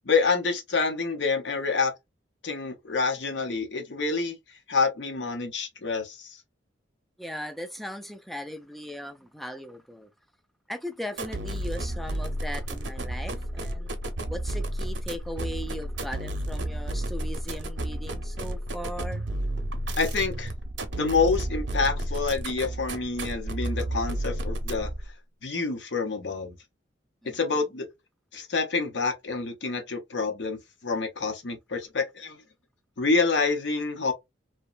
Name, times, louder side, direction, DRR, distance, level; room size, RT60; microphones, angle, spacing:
voice 1, 0.1-1.9 2.4-4.4 4.7-6.4 20.0-20.5 21.0-24.9 25.4-26.5 27.3-27.9 28.3-30.6 30.8-32.4 33.0-34.1, left 4 dB, 70° left, 0.7 m, -27 dB
voice 2, 7.2-10.1 10.7-13.9 14.3-19.2 27.2-27.4, equal, ahead, 0.3 m, -38 dB
sound 1, 11.1-25.1, right 1 dB, 75° right, 0.6 m, -32 dB
2.9 x 2.1 x 2.4 m
head